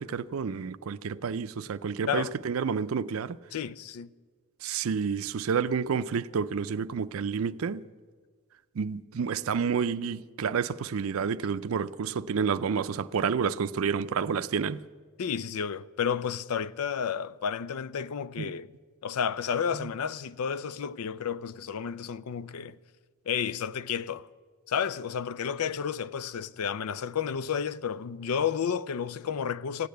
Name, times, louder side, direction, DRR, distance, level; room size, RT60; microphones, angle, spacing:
voice 1, 0.0-3.4 4.6-7.8 8.8-14.8 18.4-18.5, right 6 dB, 70° right, 0.4 m, -29 dB
voice 2, 3.5-4.1 15.2-18.7 19.0-22.8 23.3-24.3 24.7-29.9, left 7 dB, 90° left, 0.5 m, -31 dB
15.5 x 8.6 x 9.2 m
head